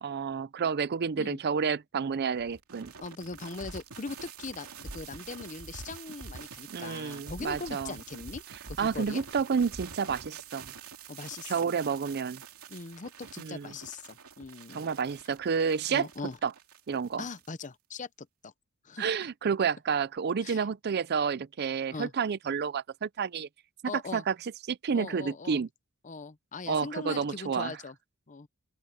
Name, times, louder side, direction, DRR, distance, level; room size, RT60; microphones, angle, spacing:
voice 1, 0.0-2.9 6.7-7.9 8.8-10.7 11.5-12.4 13.4-13.7 14.7-16.1 16.4-16.5 16.9-17.3 19.0-23.5 24.1-24.4 24.7-25.7 26.7-27.8, right 6 dB, 45° right, 0.5 m, -30 dB
sound 1, 2.4-17.7, right 5 dB, 75° right, 2.9 m, -46 dB
voice 2, 3.0-8.4 8.7-9.2 11.1-11.5 12.7-14.8 15.9-16.4 17.2-18.1 18.4-18.5 18.8-19.1 19.6-19.7 20.4-20.6 21.9-22.1 23.9-24.2 24.9-25.6 26.0-27.9 28.3-28.5, left 4 dB, 35° left, 0.7 m, -40 dB
open air
head